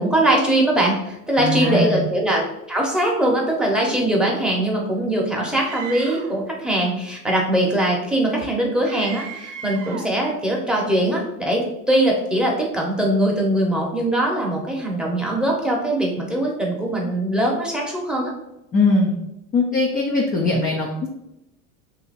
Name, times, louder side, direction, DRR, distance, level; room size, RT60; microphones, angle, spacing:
voice 1, 0.0-18.3, right 1 dB, ahead, -2 dB, 0.8 m, -21 dB
voice 2, 1.4-2.1 18.7-19.1 19.5-21.1, left 3 dB, 20° left, -1 dB, 0.4 m, -20 dB
Screaming, 5.5-6.4 8.8-10.2, right 6 dB, 40° right, 0.7 m, -36 dB
2.8 x 2.7 x 4.0 m, 0.87 s
supercardioid pair, 105°, 45 cm